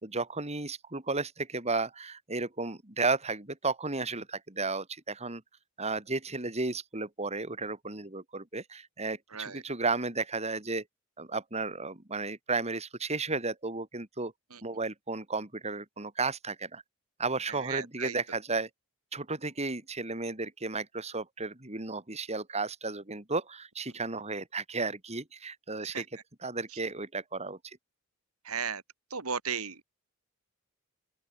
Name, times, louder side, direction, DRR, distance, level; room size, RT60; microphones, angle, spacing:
voice 1, 0.0-5.4 5.8-10.8 11.2-14.3 14.6-16.8 17.2-18.7 19.1-26.1 26.4-27.8, right 3 dB, 30° right, 3.2 m, -33 dB
voice 2, 17.6-18.1 25.9-26.0 28.5-28.8 29.1-29.8, right 6 dB, 80° right, 3.1 m, -35 dB
open air
head